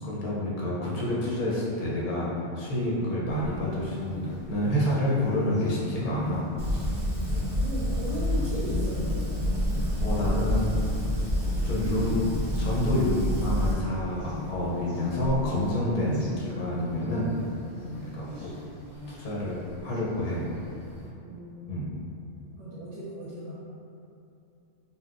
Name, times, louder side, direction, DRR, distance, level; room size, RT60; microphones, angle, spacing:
voice 1, 0.0-6.5 7.3-7.5 9.8-10.7 11.4-17.3 18.0-18.5 19.1-20.5 21.7-22.0, left 1 dB, 55° left, -6 dB, 0.6 m, -28 dB
sound 1, 3.3-21.1, equal, 30° right, 0.5 m, -41 dB
Fire, 6.6-13.7, left 1 dB, 65° right, 1.0 m, -28 dB
voice 2, 7.0-9.2 17.7-18.0 21.2-21.6 22.6-23.5, equal, 90° right, -10 dB, 1.0 m, -37 dB
3.5 x 2.1 x 2.4 m, 2.7 s
omnidirectional pair, 1.2 m